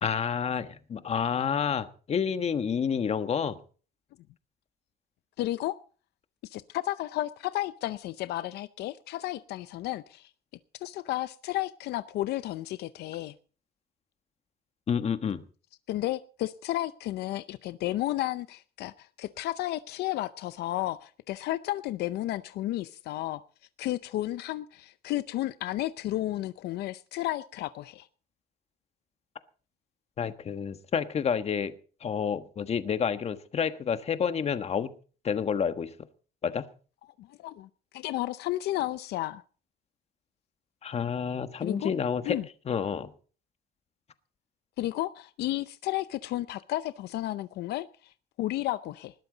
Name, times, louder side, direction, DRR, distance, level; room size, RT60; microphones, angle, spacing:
voice 1, 0.0-3.6 14.9-15.4 30.2-31.7 32.0-34.9 35.2-35.9 36.4-36.6 40.8-42.4 42.7-43.1, left 7 dB, 40° left, 10 dB, 1.4 m, -29 dB
voice 2, 5.4-5.7 6.4-10.3 10.8-13.3 15.9-23.4 23.8-28.1 37.2-39.4 41.6-41.9 42.2-42.5 44.8-48.1 48.4-49.1, left 15 dB, 75° left, 14 dB, 0.6 m, -32 dB
20.0 x 12.5 x 4.0 m, 0.40 s
cardioid pair, 110°, 17 cm